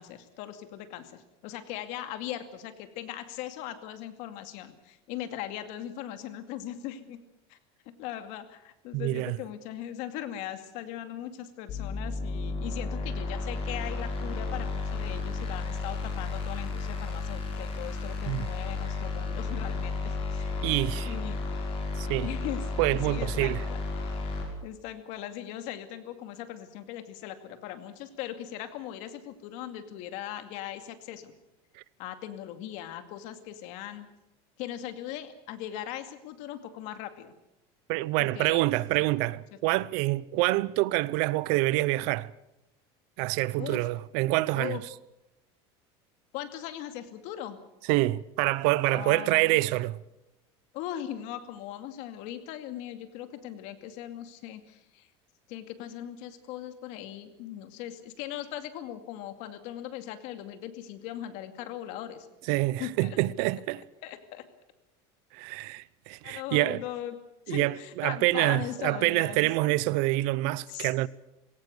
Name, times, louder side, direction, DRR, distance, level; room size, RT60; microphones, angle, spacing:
voice 1, 0.0-7.2 7.5-7.6 7.9-20.6 21.0-21.4 22.2-22.7 23.0-23.8 24.6-31.3 32.0-34.1 34.6-37.3 38.2-38.7 43.6-43.9 44.5-44.8 46.3-47.6 48.9-49.8 50.7-55.1 55.5-62.3 62.8-63.2 64.0-64.5 66.2-67.2 67.5-69.5 70.7-70.9, left 12 dB, 60° left, 2.4 m, -39 dB
voice 2, 8.9-9.4 18.3-18.5 20.6-21.1 22.0-22.3 22.8-23.6 37.9-42.3 43.2-44.8 47.9-50.0 62.5-63.8 65.3-66.8 67.5-71.1, right 19 dB, 65° right, 0.7 m, -26 dB
sound 1, 11.7-24.4, left 3 dB, 45° left, 6.0 m, -33 dB
21.0 x 17.5 x 8.2 m
cardioid pair, 145°, 14 cm